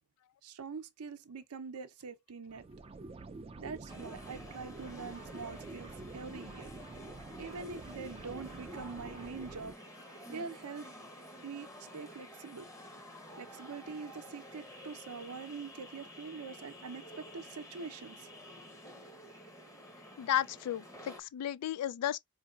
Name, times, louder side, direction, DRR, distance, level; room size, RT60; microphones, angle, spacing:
voice 1, 0.4-2.6 3.6-6.7 7.3-12.7 13.4-18.3, right 5 dB, 80° right, 0.6 m, -44 dB
sound 1, 2.5-9.7, right 2 dB, 25° right, 0.4 m, -47 dB
sound 2, 3.9-21.2, equal, 15° left, 0.8 m, -51 dB
voice 2, 20.2-22.2, left 11 dB, 90° left, 0.3 m, -33 dB
4.6 x 2.7 x 2.3 m
head